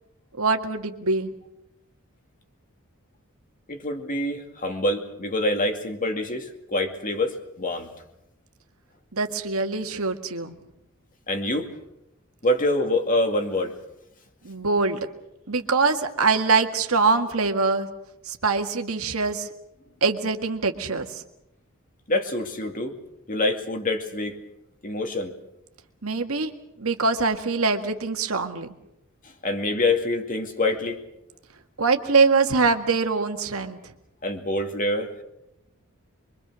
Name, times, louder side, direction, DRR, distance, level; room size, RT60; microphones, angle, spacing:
voice 1, 0.4-1.3 9.1-10.5 14.4-15.1 15.5-17.9 18.3-19.5 20.0-21.2 26.0-26.5 26.8-28.7 31.8-33.8, right 4 dB, 75° right, 5 dB, 1.8 m, -23 dB
voice 2, 3.7-7.9 11.3-11.7 12.4-13.7 22.1-23.0 23.3-24.4 24.8-25.3 29.4-31.0 34.2-35.2, left 1 dB, 40° left, 5 dB, 2.3 m, -26 dB
25.0 x 23.5 x 6.3 m, 0.85 s
head